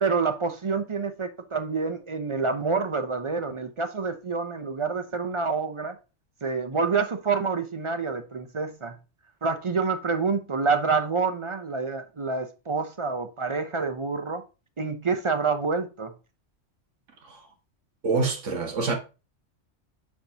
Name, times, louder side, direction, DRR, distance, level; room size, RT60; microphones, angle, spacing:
voice 1, 0.0-6.0 6.4-9.0 9.4-14.4 14.8-16.1, right 4 dB, 40° right, 0.5 m, -27 dB
voice 2, 18.0-18.9, right 4 dB, 80° right, 1.7 m, -26 dB
9.2 x 5.5 x 2.8 m
omnidirectional pair, 1.2 m